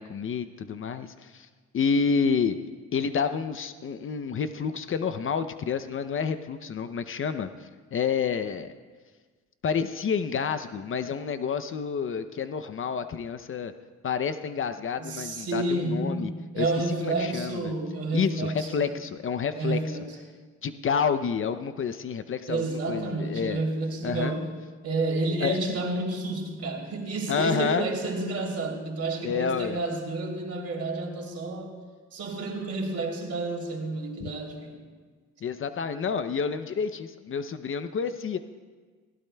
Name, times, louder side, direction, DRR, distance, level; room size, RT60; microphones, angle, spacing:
voice 1, 0.0-1.5 1.7-2.6 2.9-8.7 9.6-13.7 14.0-16.3 16.6-16.7 17.0-17.7 18.1-20.0 20.6-23.6 24.0-24.3 25.4-25.8 27.3-27.9 29.2-29.8 34.2-34.3 35.4-38.4, left 6 dB, 45° left, 11 dB, 0.6 m, -29 dB
voice 2, 15.0-18.9 19.5-20.1 22.5-24.5 24.8-31.7 32.1-34.8, right 2 dB, 55° right, 0 dB, 3.1 m, -30 dB
20.5 x 16.0 x 2.2 m, 1.5 s
cardioid pair, 90°, 30 cm